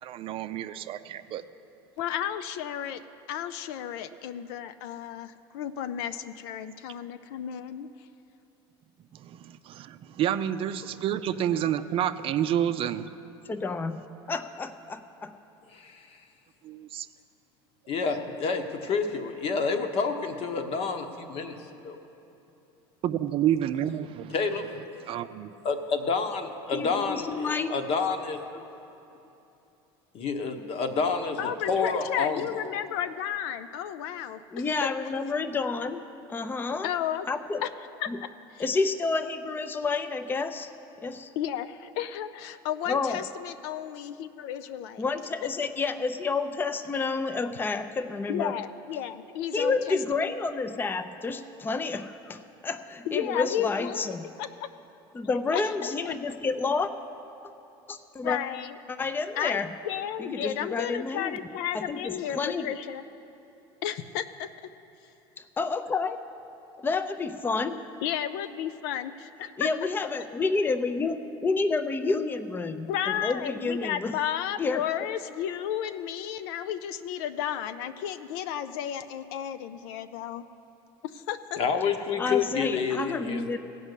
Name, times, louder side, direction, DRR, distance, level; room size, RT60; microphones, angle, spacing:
voice 1, 0.0-1.4 9.1-13.1 16.6-17.1 23.0-24.3 25.1-25.5, right 10 dB, 45° right, 11 dB, 0.5 m, -29 dB
voice 2, 2.0-3.0 3.3-7.9 31.4-34.9 36.8-37.3 37.6-37.7 38.0-38.7 41.4-45.0 48.3-50.3 53.1-54.7 55.5-56.1 58.2-58.8 59.4-63.0 63.8-64.5 68.0-69.7 72.9-80.4 81.0-81.6, left 10 dB, 75° left, 11 dB, 0.5 m, -33 dB
voice 3, 13.5-14.0 14.3-15.4 26.7-27.7 34.5-36.9 37.3-37.6 38.1-38.2 38.6-40.7 41.0-41.3 42.9-43.2 45.0-48.5 49.5-54.3 55.1-56.9 57.9-58.4 58.9-59.7 60.2-61.4 61.7-62.7 65.4-66.2 66.8-67.8 69.6-74.2 74.6-74.9 82.2-83.6, left 4 dB, 15° left, 9 dB, 0.5 m, -29 dB
voice 4, 15.7-16.1 17.9-21.6 21.8-22.0 24.3-24.8 25.6-28.4 30.1-32.4 81.6-83.4, left 5 dB, 50° left, 6 dB, 1.1 m, -29 dB
16.0 x 5.4 x 8.2 m, 2.9 s
supercardioid pair, 100°, 13 cm